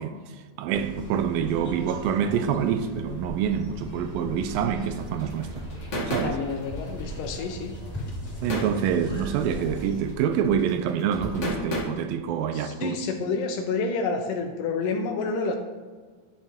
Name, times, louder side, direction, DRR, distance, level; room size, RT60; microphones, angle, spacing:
voice 1, 0.0-5.7 6.1-6.4 8.4-13.0, right 8 dB, 80° right, 2.2 m, -26 dB
sound 1, 0.7-10.1, equal, 10° left, 2.1 m, -38 dB
sound 2, 4.9-11.8, equal, 55° left, 0.8 m, -34 dB
voice 2, 6.2-7.7 12.5-15.5, left 4 dB, 75° left, 2.0 m, -29 dB
11.0 x 6.7 x 3.6 m
omnidirectional pair, 4.2 m